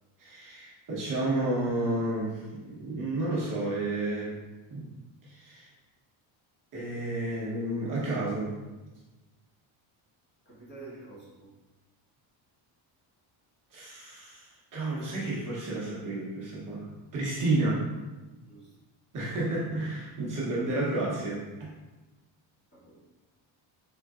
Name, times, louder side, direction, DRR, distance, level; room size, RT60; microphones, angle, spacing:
voice 1, 0.2-4.4 4.7-4.9 5.2-5.7 6.7-8.6 13.7-17.9 19.1-21.7, right 2 dB, 40° right, -6 dB, 0.9 m, -31 dB
voice 2, 10.4-11.5 18.4-18.7 22.7-23.0, right 3 dB, 25° left, -9 dB, 1.4 m, -48 dB
3.8 x 3.7 x 2.3 m, 1.1 s
cardioid pair, 165°, 48 cm